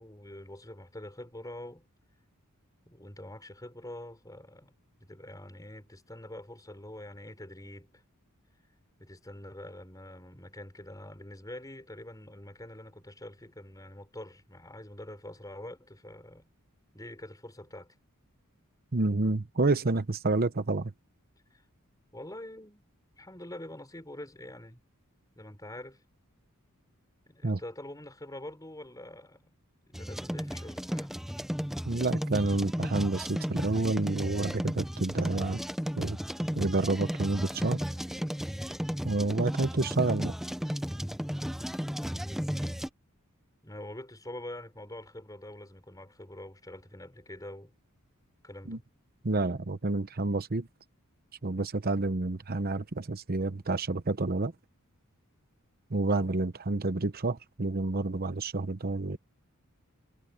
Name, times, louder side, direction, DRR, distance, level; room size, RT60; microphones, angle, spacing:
voice 1, 0.0-1.8 2.9-4.7 5.0-8.0 9.0-16.5 16.9-17.9 21.5-21.6 22.1-22.9 23.2-24.8 25.4-26.0 27.3-29.5 29.9-31.1 42.5-42.8 43.6-47.7 48.4-48.8, left 1 dB, 15° left, 6.5 m, -45 dB
voice 2, 18.9-20.9 27.4-27.6 31.8-35.6 36.0-36.2 36.5-37.8 39.0-40.3 48.7-48.8 49.2-50.7 51.4-54.5 55.9-59.2, right 2 dB, 45° right, 0.9 m, -29 dB
sound 1, 29.9-42.9, equal, ahead, 0.7 m, -34 dB
head